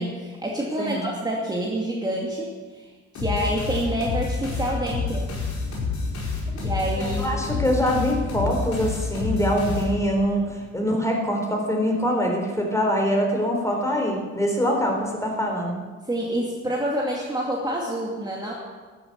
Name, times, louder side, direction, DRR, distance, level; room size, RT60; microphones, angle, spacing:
voice 1, 0.0-5.3 6.6-7.3 16.1-18.5, right 1 dB, 15° right, -3 dB, 2.4 m, -27 dB
sound 1, 3.1-10.3, left 4 dB, 65° left, 5.0 m, -28 dB
voice 2, 7.0-15.8, equal, 10° left, 1 dB, 4.0 m, -24 dB
12.5 x 11.0 x 8.1 m, 1.4 s
cardioid pair, 90°, 30 cm